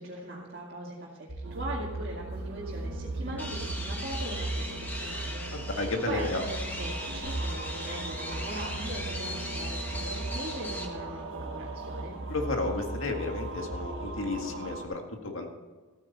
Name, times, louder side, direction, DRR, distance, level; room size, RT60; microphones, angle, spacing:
voice 1, 0.0-12.1, right 1 dB, 45° right, -6 dB, 2.3 m, -40 dB
sound 1, 1.3-7.2, right 3 dB, 85° right, 1.7 m, -40 dB
sound 2, 1.4-14.8, right 2 dB, 70° right, 1.3 m, -37 dB
sound 3, 3.4-10.9, left 1 dB, 10° left, 1.6 m, -39 dB
voice 2, 5.5-6.4 12.3-15.5, left 2 dB, 80° left, 3 dB, 1.9 m, -32 dB
14.5 x 9.8 x 4.2 m, 1.4 s
head